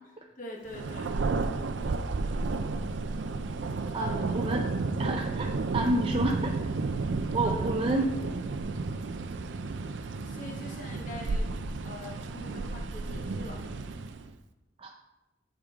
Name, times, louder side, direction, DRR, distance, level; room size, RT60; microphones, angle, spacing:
voice 1, 0.4-1.2 4.0-4.2 7.4-7.6 10.2-11.5 11.8-13.6, left 2 dB, 45° left, 0 dB, 1.0 m, -43 dB
Thunder, 0.7-14.3, right 3 dB, 85° right, 0.5 m, -32 dB
voice 2, 3.9-4.7 5.0-6.5 7.3-8.2 14.8-14.9, right 2 dB, 30° right, 1 dB, 0.4 m, -29 dB
7.1 x 5.1 x 3.6 m, 0.99 s
head